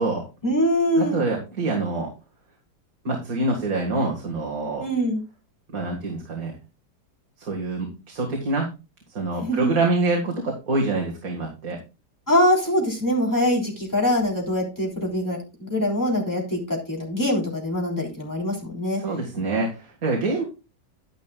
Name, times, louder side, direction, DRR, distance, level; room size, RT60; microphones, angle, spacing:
voice 1, 0.4-1.2 4.8-5.2 9.4-9.7 12.3-19.0, equal, 10° left, -2 dB, 3.5 m, -23 dB
voice 2, 1.0-2.1 3.0-4.9 5.7-6.5 7.4-8.7 9.1-11.8 19.0-20.4, right 2 dB, 55° right, 0 dB, 2.3 m, -25 dB
11.0 x 10.5 x 2.4 m, 0.29 s
omnidirectional pair, 1.8 m